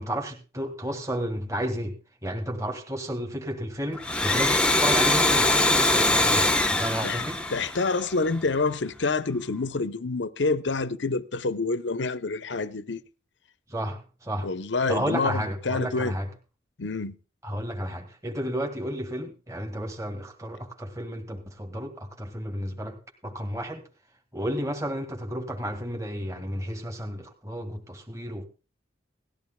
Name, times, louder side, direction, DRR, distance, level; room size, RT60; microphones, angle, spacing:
voice 1, 0.0-7.4 13.7-14.5 14.9-16.3 17.4-23.0 23.2-23.8 24.3-28.5, equal, 15° right, 1.9 m, -32 dB
Domestic sounds home sounds, 3.9-8.4, left 2 dB, 5° left, 0.9 m, -23 dB
voice 2, 7.5-13.0 14.4-16.2 16.8-17.1, left 3 dB, 70° left, 0.8 m, -27 dB
18.0 x 14.0 x 2.2 m
head